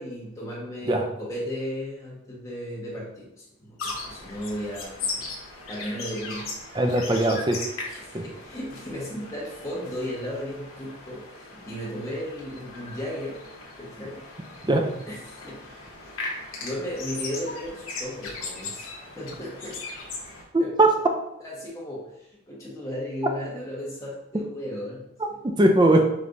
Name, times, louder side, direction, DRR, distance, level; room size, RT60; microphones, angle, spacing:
voice 1, 0.0-5.3 5.7-6.5 7.9-13.4 13.8-14.2 15.1-15.9 16.6-18.9 19.1-19.8 20.6-21.0 21.4-25.4, equal, 15° left, -6 dB, 1.2 m, -35 dB
sound 1, 3.8-20.4, left 3 dB, 85° left, 0.9 m, -38 dB
voice 2, 6.8-7.6 8.1-8.2 14.7-14.9 20.5-20.9 25.4-26.1, right 1 dB, 20° right, 4 dB, 0.4 m, -20 dB
5.1 x 3.2 x 2.6 m, 0.84 s
head